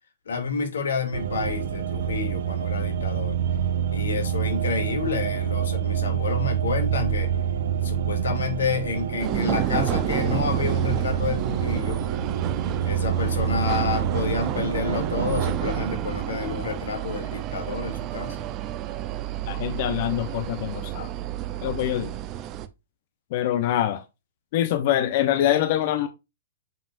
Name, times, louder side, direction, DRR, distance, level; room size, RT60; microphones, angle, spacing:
voice 1, 0.3-3.4 3.9-7.3 7.8-12.0 12.8-18.4, left 5 dB, 80° left, 2.7 m, -29 dB
sound 1, 1.1-15.6, right 8 dB, 70° right, 1.4 m, -27 dB
sound 2, 9.2-22.7, right 13 dB, 30° right, 0.7 m, -30 dB
voice 2, 19.5-21.1 21.6-22.1 23.3-24.0 24.5-26.1, left 12 dB, 45° left, 0.9 m, -24 dB
7.5 x 5.6 x 2.6 m
hypercardioid pair, 140°, 0 cm